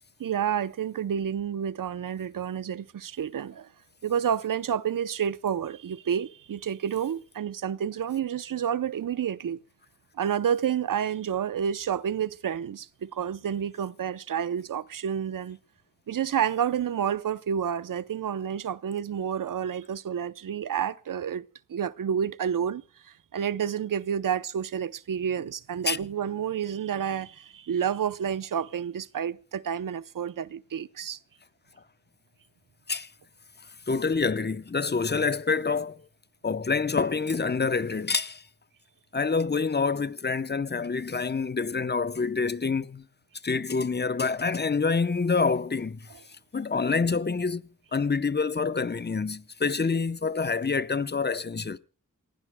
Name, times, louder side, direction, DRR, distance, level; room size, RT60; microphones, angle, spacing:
voice 1, 0.2-3.7 4.0-9.6 10.1-15.6 16.1-21.4 21.7-31.2, right 8 dB, 90° right, 0.7 m, -29 dB
voice 2, 33.9-36.1 36.4-38.4 39.1-43.1 43.4-46.1 46.5-51.8, left 4 dB, 30° left, 0.8 m, -27 dB
28.0 x 16.0 x 2.2 m
wide cardioid pair, 70°, 32 cm